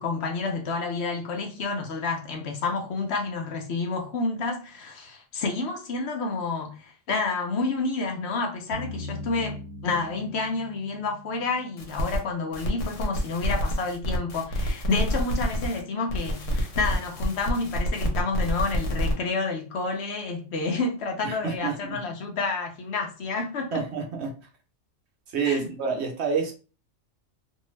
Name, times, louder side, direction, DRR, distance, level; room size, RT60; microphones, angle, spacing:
voice 1, 0.0-9.6 9.8-23.8 25.4-25.7, left 3 dB, 65° left, 0.9 m, -29 dB
sound 1, 8.7-12.4, left 1 dB, 85° right, 1.2 m, -40 dB
sound 2, 11.8-12.2 12.5-15.8 16.1-19.1, equal, 90° left, 1.1 m, -28 dB
voice 2, 21.2-22.0 23.7-24.4 25.3-26.5, right 5 dB, 65° right, 1.0 m, -28 dB
2.6 x 2.3 x 3.1 m
omnidirectional pair, 1.2 m